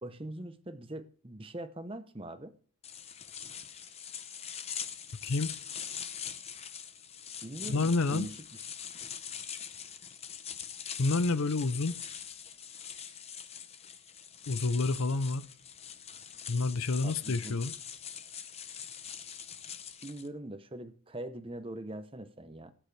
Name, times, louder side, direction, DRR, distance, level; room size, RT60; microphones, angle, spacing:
voice 1, 0.0-2.5 7.4-8.6 17.0-17.6 20.0-22.7, right 1 dB, 25° right, 0.8 m, -42 dB
sound 1, 2.8-20.3, left 8 dB, 30° left, 0.8 m, -43 dB
voice 2, 7.6-8.3 11.0-12.0 14.5-15.5 16.5-17.7, left 3 dB, 80° left, 0.6 m, -29 dB
18.0 x 9.1 x 3.3 m
head